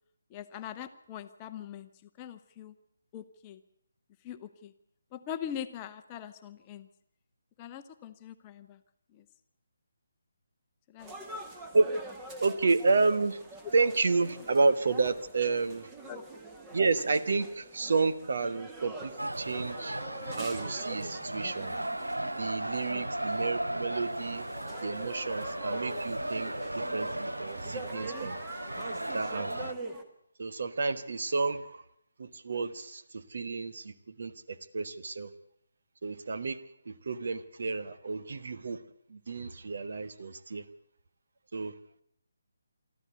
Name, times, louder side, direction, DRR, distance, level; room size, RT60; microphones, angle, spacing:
voice 1, 0.3-1.9 2.2-2.7 3.1-3.6 4.2-4.7 5.1-6.9 7.6-8.8 9.1-9.2 10.9-11.1 16.1-16.2, left 9 dB, 20° left, 8 dB, 0.9 m, -42 dB
sound 1, 11.0-30.0, right 2 dB, 15° right, 1.7 m, -45 dB
voice 2, 12.4-13.4 13.7-15.9 16.7-20.0 20.4-21.7 22.4-24.5 24.8-28.4 28.9-29.7 30.4-31.8 32.2-35.3 36.0-36.6 36.8-38.8 39.1-40.6 41.5-41.7, right 3 dB, 50° right, 11 dB, 1.2 m, -30 dB
sound 2, 19.2-29.7, right 1 dB, 80° right, 0.8 m, -36 dB
24.5 x 13.5 x 8.2 m, 0.72 s
figure-of-eight pair, 145°, 0 cm